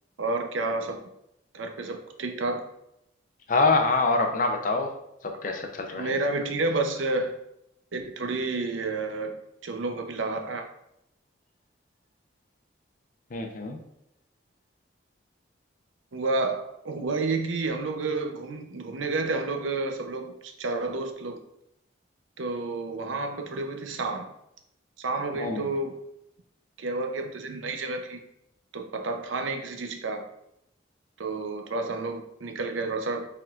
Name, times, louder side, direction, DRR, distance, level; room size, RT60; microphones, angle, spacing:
voice 1, 0.2-1.0 1.5-2.6 6.0-7.4 7.9-9.4 9.6-10.7 16.1-21.4 22.4-24.3 25.0-26.0 26.8-28.2 28.7-30.3 31.2-33.3, right 3 dB, 85° right, 4 dB, 0.6 m, -30 dB
voice 2, 3.5-4.9 5.2-6.1 13.3-13.8 25.3-25.7, left 3 dB, 45° left, 4 dB, 0.5 m, -25 dB
4.5 x 3.7 x 2.4 m, 0.81 s
head